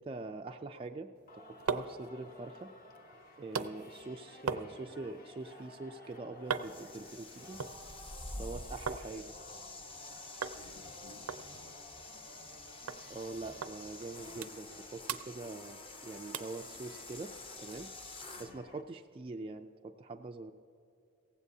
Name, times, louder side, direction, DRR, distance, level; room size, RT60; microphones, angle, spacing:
voice 1, 0.0-2.7 3.4-7.6 8.3-9.3 13.1-17.9 18.4-20.5, right 3 dB, 25° right, 3 dB, 0.3 m, -44 dB
sound 1, 1.2-9.1 9.4-10.0 10.4-10.6 10.9-11.0 11.3-12.6 12.9-13.0 13.6-13.7 14.1-14.8 15.0-16.0 16.3-16.6 17.1-17.2, right 5 dB, 90° right, 0.6 m, -41 dB
Singing, 1.3-18.8, left 1 dB, 45° left, 1.2 m, -55 dB
sound 2, 6.5-18.5, left 2 dB, 25° left, 0.8 m, -48 dB
voice 2, 8.3-8.7 10.6-11.8 12.2-12.3 18.3-18.7, left 6 dB, 80° left, 11 dB, 0.5 m, -60 dB
17.0 x 15.5 x 2.7 m, 2.8 s
head